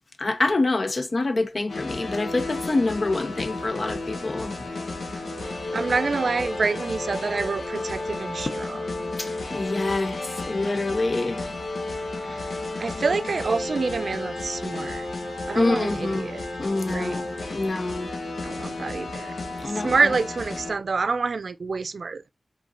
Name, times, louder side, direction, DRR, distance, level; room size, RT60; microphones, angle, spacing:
voice 1, 0.2-4.5 9.2-10.2 10.5-11.4 15.5-16.3 16.6-17.2 17.5-18.1 19.6-19.9, left 2 dB, 50° left, 0.8 m, -26 dB
sound 1, 1.7-20.7, left 2 dB, 85° left, 1.5 m, -32 dB
voice 2, 5.7-8.9 12.2-12.5 12.8-15.1 15.5-16.5 16.9-17.2 18.4-19.3 19.7-22.2, right 4 dB, 70° right, 0.4 m, -27 dB
5.2 x 3.8 x 2.5 m
wide cardioid pair, 100°, 0 cm